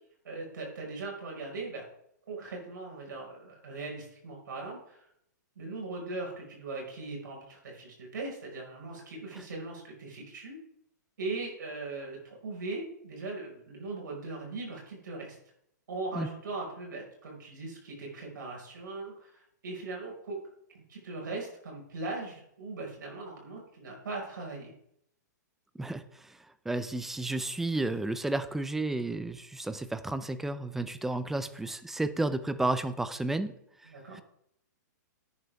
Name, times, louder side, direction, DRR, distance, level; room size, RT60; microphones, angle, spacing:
voice 1, 0.2-1.9 2.3-5.0 5.5-10.6 11.2-15.4 15.9-20.4 20.7-24.7 33.9-34.2, right 3 dB, 85° right, -1 dB, 5.0 m, -39 dB
voice 2, 25.8-33.5 33.8-34.2, right 2 dB, 5° right, 13 dB, 0.4 m, -32 dB
11.0 x 9.6 x 3.5 m, 0.73 s
hypercardioid pair, 160°, 10 cm